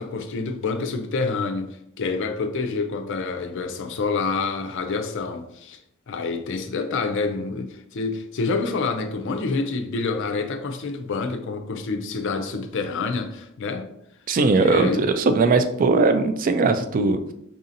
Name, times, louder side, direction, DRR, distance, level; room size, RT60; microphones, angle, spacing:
voice 1, 0.0-1.7 2.0-5.8 6.1-13.9 14.6-15.1, left 4 dB, 60° left, 0.4 m, -27 dB
voice 2, 14.3-17.3, right 3 dB, 40° right, 0.3 m, -20 dB
4.8 x 2.7 x 2.6 m
head